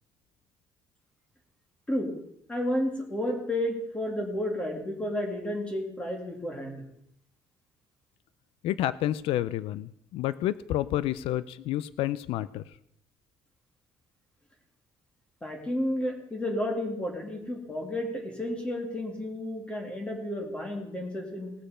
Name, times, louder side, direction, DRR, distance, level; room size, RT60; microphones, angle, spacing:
voice 1, 2.5-6.8 15.4-21.5, left 1 dB, 10° left, 2 dB, 2.4 m, -31 dB
voice 2, 8.6-12.6, left 13 dB, 75° left, 16 dB, 0.4 m, -29 dB
19.0 x 6.7 x 5.1 m, 0.74 s
cardioid pair, 165°, 10 cm